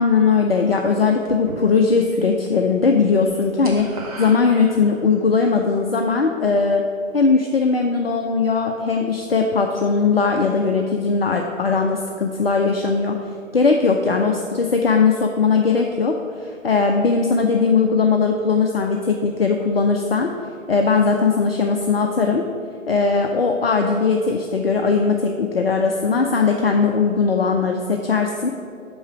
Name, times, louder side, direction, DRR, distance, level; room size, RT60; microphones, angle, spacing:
voice 1, 0.0-6.8 7.1-13.2 13.5-20.3 20.7-22.4 22.9-28.5, left 4 dB, 50° left, 3 dB, 0.6 m, -19 dB
sound 1, 1.2-2.2 2.5-2.9 3.1-5.2, right 3 dB, 25° right, 1.2 m, -37 dB
6.6 x 5.5 x 7.1 m, 2.4 s
figure-of-eight pair, 145°, 40 cm